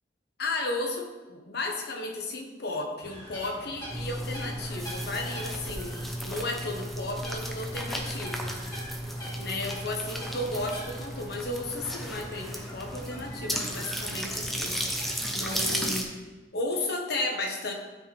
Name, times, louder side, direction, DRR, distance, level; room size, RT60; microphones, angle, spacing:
voice 1, 0.4-5.9 6.2-8.6 9.4-15.1 15.3-16.1 16.5-17.7, left 2 dB, 65° left, 2 dB, 1.2 m, -34 dB
sound 1, 3.0-15.8, equal, 25° left, 2.9 m, -44 dB
sound 2, 3.9-16.0, equal, ahead, 0.8 m, -34 dB
12.5 x 4.9 x 3.4 m, 1.2 s
head